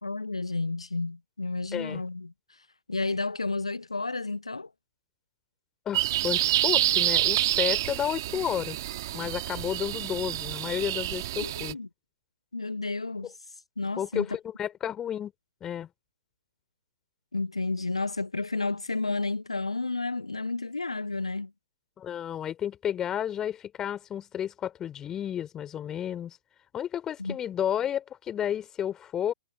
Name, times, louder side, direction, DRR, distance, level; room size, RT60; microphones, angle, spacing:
voice 1, 0.0-4.7 11.4-11.9 12.5-13.3 13.8-14.3 17.3-21.5 27.2-27.4, left 3 dB, 75° left, 0.9 m, -31 dB
voice 2, 1.7-2.0 5.9-8.8 9.1-11.8 14.0-15.3 15.6-15.9 22.0-26.4 26.7-29.3, left 10 dB, 15° left, 4.0 m, -32 dB
sound 1, 5.9-11.7, right 14 dB, 40° right, 2.6 m, -27 dB
figure-of-eight pair, 115°, 3 cm